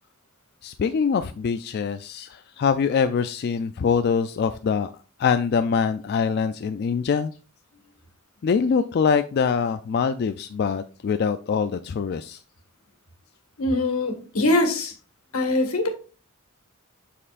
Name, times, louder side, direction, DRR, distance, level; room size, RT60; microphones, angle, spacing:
voice 1, 0.6-4.9 5.2-7.3 8.4-12.4, left 6 dB, 50° left, 9 dB, 0.3 m, -24 dB
voice 2, 13.6-14.9 15.3-15.9, left 2 dB, 85° left, 5 dB, 1.7 m, -22 dB
12.5 x 4.3 x 2.5 m, 0.37 s
head